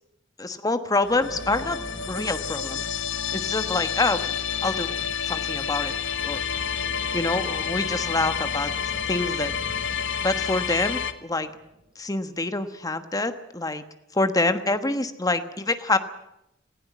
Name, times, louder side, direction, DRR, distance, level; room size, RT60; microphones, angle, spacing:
voice 1, 0.4-1.8 2.1-3.0 3.3-4.4 4.6-5.0 5.2-5.9 6.2-6.4 7.1-8.7 9.1-9.5 10.2-11.5 12.0-13.8 14.1-16.0, left 2 dB, 20° left, 10 dB, 1.2 m, -26 dB
sound 1, 1.0-11.1, left 7 dB, 90° left, 1.3 m, -29 dB
sound 2, 1.2-4.0 6.7-12.1, right 1 dB, 70° right, 2.4 m, -44 dB
sound 3, 2.9-8.1, equal, 30° right, 6.9 m, -51 dB
18.5 x 16.0 x 10.0 m, 0.84 s
head